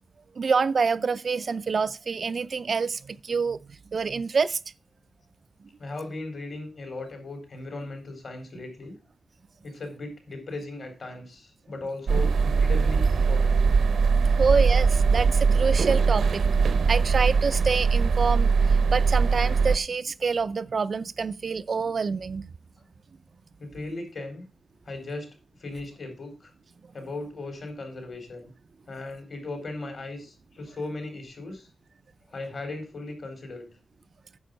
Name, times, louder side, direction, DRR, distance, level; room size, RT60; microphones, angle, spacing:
voice 1, 0.4-3.6 3.9-4.6 14.2-22.5, right 5 dB, 50° right, 0.4 m, -27 dB
voice 2, 5.8-9.0 9.6-13.6 14.3-14.5 23.6-24.4 24.9-25.3 25.6-26.5 26.9-28.5 28.9-31.7 32.3-33.7, left 2 dB, 50° left, 4.1 m, -37 dB
sound 1, 12.1-19.8, right 5 dB, 80° right, 0.8 m, -21 dB
9.4 x 6.8 x 5.2 m
wide cardioid pair, 130°, 0 cm